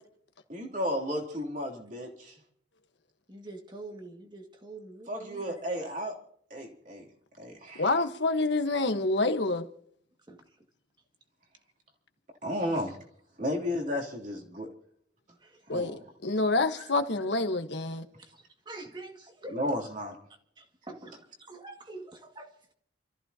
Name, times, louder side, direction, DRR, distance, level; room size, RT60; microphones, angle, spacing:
voice 1, 0.5-2.4 5.1-6.1 6.5-7.1 7.4-7.9 12.4-13.0 13.4-14.7 15.7-16.0 19.5-20.2, equal, 45° right, 3.0 m, -33 dB
voice 2, 3.3-5.6 10.3-10.4 15.3-15.8 18.2-19.8 20.6-22.7, right 2 dB, 25° right, 2.0 m, -46 dB
voice 3, 7.7-9.6 15.7-18.0, left 2 dB, 70° left, 1.2 m, -27 dB
28.5 x 14.5 x 2.8 m
head